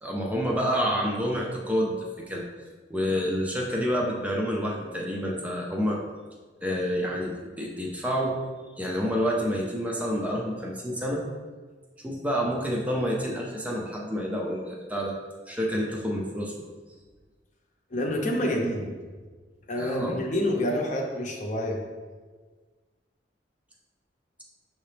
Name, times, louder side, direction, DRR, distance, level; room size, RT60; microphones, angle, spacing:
voice 1, 0.0-2.5 2.9-6.0 6.6-8.4 8.8-11.2 12.0-15.1 15.5-16.5 19.8-20.2, equal, 10° right, -2 dB, 0.4 m, -28 dB
voice 2, 17.9-18.9 19.7-21.8, left 1 dB, 45° left, 0 dB, 0.7 m, -27 dB
5.9 x 2.8 x 3.3 m, 1.4 s
head